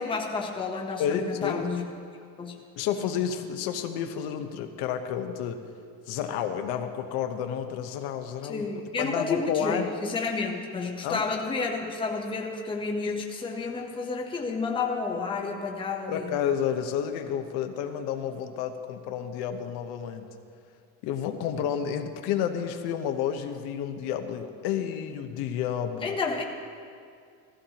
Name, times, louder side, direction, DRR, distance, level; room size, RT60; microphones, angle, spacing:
voice 1, 0.0-1.9 2.4-2.6 8.4-16.4 26.0-26.4, left 4 dB, 15° left, 0 dB, 0.9 m, -30 dB
voice 2, 1.0-1.7 2.8-5.6 6.1-8.7 9.0-9.9 11.0-11.2 16.1-20.3 21.0-26.1, left 8 dB, 75° left, 6 dB, 1.0 m, -30 dB
15.5 x 15.0 x 2.9 m, 2.3 s
cardioid pair, 160°, 39 cm